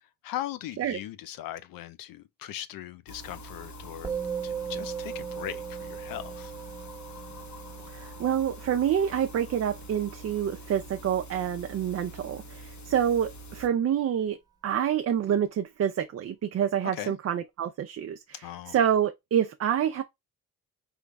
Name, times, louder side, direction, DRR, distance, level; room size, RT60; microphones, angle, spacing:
voice 1, 0.2-4.1 4.4-6.5 16.9-17.1 18.4-18.8, left 12 dB, 85° left, 0.6 m, -39 dB
sound 1, 3.1-13.7, right 1 dB, 55° left, 1.1 m, -45 dB
Musical instrument, 4.0-13.6, right 7 dB, 10° right, 1.0 m, -39 dB
voice 2, 7.9-14.4 14.6-20.0, right 9 dB, 45° right, 0.5 m, -27 dB
3.8 x 3.2 x 3.4 m
cardioid pair, 65°, 33 cm